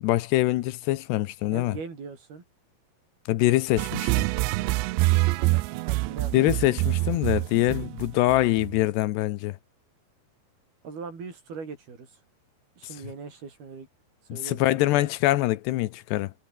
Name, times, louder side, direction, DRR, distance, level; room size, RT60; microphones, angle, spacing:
voice 1, 0.0-1.8 3.3-4.1 6.3-9.6 14.3-16.3, left 17 dB, 80° left, 2.9 m, -24 dB
voice 2, 1.5-2.4 4.3-6.5 7.1-7.3 10.8-12.2 12.8-13.9 14.3-15.1, right 5 dB, 60° right, 7.7 m, -41 dB
sound 1, 3.8-8.8, right 20 dB, 85° right, 2.9 m, -26 dB
omnidirectional pair, 5.0 m